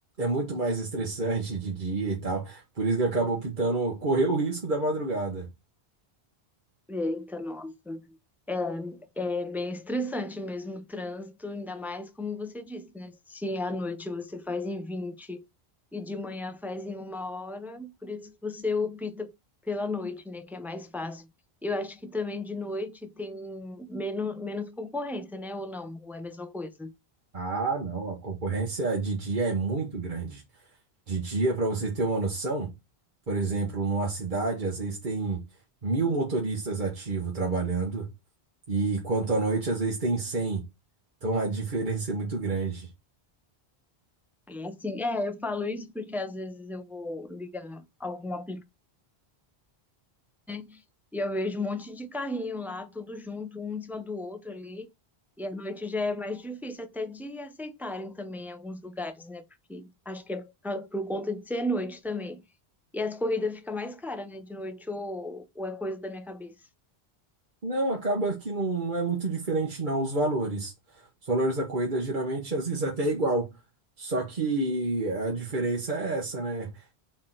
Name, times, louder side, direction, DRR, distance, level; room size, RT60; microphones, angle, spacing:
voice 1, 0.2-5.5 27.3-30.4 31.1-32.7 33.3-35.4 35.8-38.1 38.7-40.6 41.2-42.9 67.6-73.5 74.0-77.0, right 3 dB, 50° right, 1.4 m, -28 dB
voice 2, 6.9-8.2 8.5-15.4 15.9-19.3 19.6-21.3 21.6-26.9 44.5-48.6 50.5-50.8 51.1-54.9 55.4-59.4 59.7-62.4 62.9-66.5, left 2 dB, ahead, 0.6 m, -34 dB
4.7 x 4.5 x 5.9 m
omnidirectional pair, 1.1 m